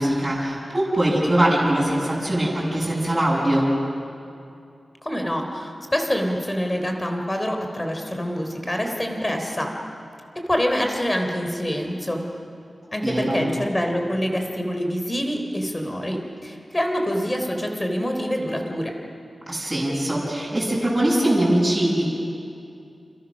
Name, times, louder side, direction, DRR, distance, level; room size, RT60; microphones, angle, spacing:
voice 1, 0.0-3.7 13.0-13.4 19.5-22.1, right 1 dB, 20° right, -6 dB, 7.3 m, -22 dB
voice 2, 5.0-9.7 10.5-12.2 12.9-18.9, equal, 15° left, 3 dB, 3.5 m, -26 dB
29.0 x 28.5 x 6.4 m, 2.5 s
wide cardioid pair, 125°, 0 cm